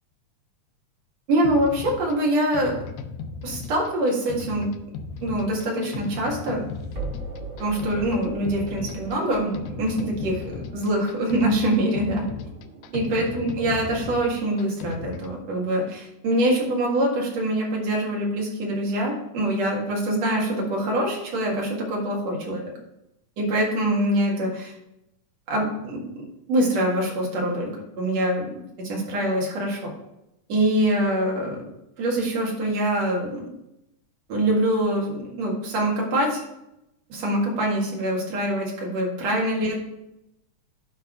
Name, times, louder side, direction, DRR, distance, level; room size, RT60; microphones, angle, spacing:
voice 1, 1.3-2.8 3.4-4.7 5.2-6.6 7.6-12.3 12.9-22.6 23.4-24.7 25.5-26.0 26.5-27.7 28.0-28.5 28.8-29.9 30.5-31.7 32.0-33.5 34.3-36.4 37.1-39.8, right 1 dB, 60° right, -2 dB, 2.9 m, -24 dB
sound 1, 1.4-15.4, left 5 dB, 80° left, 1.7 m, -37 dB
sound 2, 5.1-16.1, right 3 dB, 40° right, 1.5 m, -42 dB
10.5 x 3.6 x 5.1 m, 0.85 s
omnidirectional pair, 3.7 m